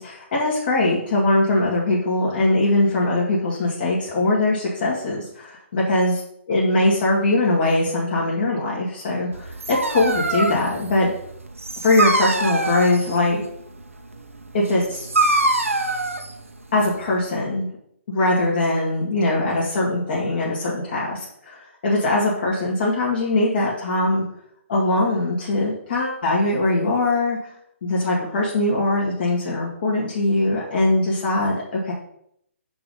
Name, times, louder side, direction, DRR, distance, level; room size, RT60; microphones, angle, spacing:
voice 1, 0.0-6.2 6.5-11.1 11.8-13.4 14.5-15.1 16.7-17.7 18.1-24.2 24.7-27.4 27.8-31.9, left 2 dB, 50° left, -5 dB, 2.1 m, -21 dB
Dog, 9.3-17.2, right 2 dB, 85° right, 1.0 m, -25 dB
6.0 x 4.7 x 5.5 m, 0.71 s
figure-of-eight pair, 140°, 7 cm